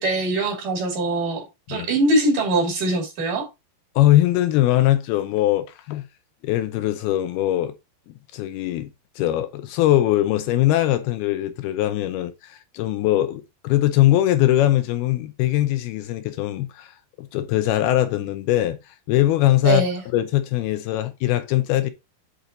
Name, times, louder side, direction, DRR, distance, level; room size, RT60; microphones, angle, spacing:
voice 1, 0.0-3.5 19.6-20.0, right 2 dB, 55° right, 4.0 m, -22 dB
voice 2, 4.0-6.1 6.4-7.7 8.1-19.8 20.1-21.9, left 14 dB, 80° left, 2.5 m, -21 dB
8.3 x 4.4 x 3.7 m
omnidirectional pair, 4.8 m